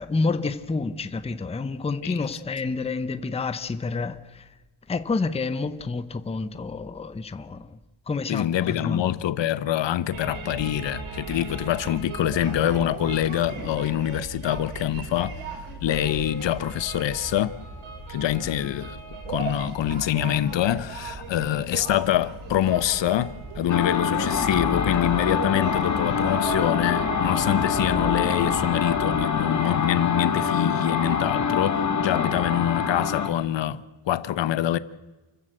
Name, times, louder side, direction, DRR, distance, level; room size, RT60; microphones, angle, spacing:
voice 1, 0.0-4.5 4.9-7.8 8.1-9.1, left 3 dB, 15° left, 0.7 m, -29 dB
voice 2, 8.3-15.3 15.8-17.5 18.1-19.0 19.3-34.8, left 12 dB, 65° left, 1.0 m, -25 dB
sound 1, 10.1-29.2, right 3 dB, 85° right, 5.6 m, -36 dB
sound 2, 23.7-33.3, left 6 dB, 35° left, 1.8 m, -25 dB
28.5 x 14.0 x 7.9 m
wide cardioid pair, 165°, 47 cm